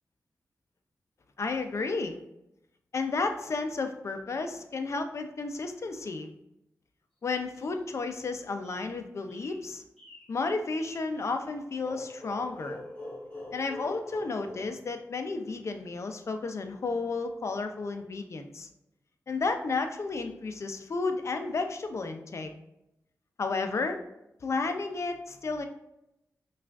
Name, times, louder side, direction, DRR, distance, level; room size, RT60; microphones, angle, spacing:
voice 1, 1.4-2.2 2.9-6.3 7.2-9.8 10.3-12.8 13.5-18.7 19.3-22.5 23.4-24.0 24.4-25.7, left 3 dB, 55° left, 6 dB, 0.5 m, -32 dB
sound 1, 7.4-8.2 8.6-9.0 9.3-9.7 10.0-10.3 10.7-11.1, left 1 dB, 5° left, 1.2 m, -53 dB
sound 2, 11.8-15.5, left 1 dB, 25° left, 1.1 m, -42 dB
5.6 x 2.4 x 2.4 m, 0.85 s
wide cardioid pair, 80°, 6 cm